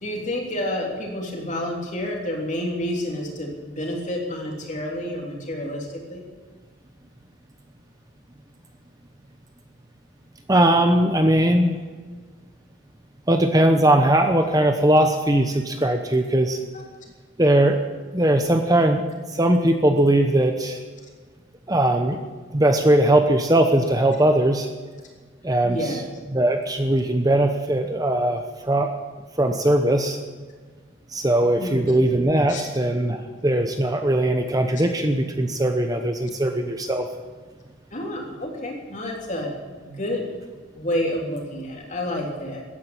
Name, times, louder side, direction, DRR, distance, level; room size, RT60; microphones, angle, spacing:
voice 1, 0.0-6.2 16.7-16.8 25.6-26.1 31.6-31.9 32.5-32.6 34.8-34.9 37.9-39.5 39.8-40.2 40.7-42.6, left 1 dB, 35° left, 0 dB, 3.5 m, -29 dB
voice 2, 10.5-11.8 13.3-16.6 17.4-17.8 18.1-19.0 19.3-20.8 21.7-22.2 22.5-24.7 25.4-26.0 26.3-28.9 29.4-30.2 31.1-37.1, right 1 dB, 20° right, 5 dB, 0.9 m, -20 dB
15.0 x 10.5 x 8.9 m, 1.5 s
head